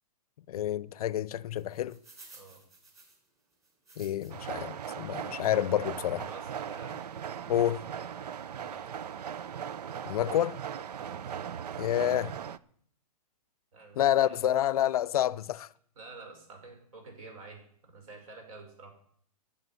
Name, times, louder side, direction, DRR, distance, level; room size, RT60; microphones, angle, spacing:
voice 1, 0.5-2.0 4.0-6.2 7.5-7.8 10.1-10.6 11.8-12.3 14.0-15.7, left 11 dB, 70° left, 0.6 m, -28 dB
sound 1, 1.6-4.6 5.0-5.1 5.9-6.0 6.5-6.6 6.8-7.0, right 3 dB, 15° right, 3.7 m, -55 dB
voice 2, 2.3-2.6 6.2-7.0 8.6-8.8 10.9-11.2 13.7-14.4 16.0-18.9, right 3 dB, 65° right, 5.6 m, -49 dB
sound 2, 4.3-12.6, right 8 dB, 85° right, 0.6 m, -39 dB
11.0 x 7.4 x 9.4 m
hypercardioid pair, 145°, 20 cm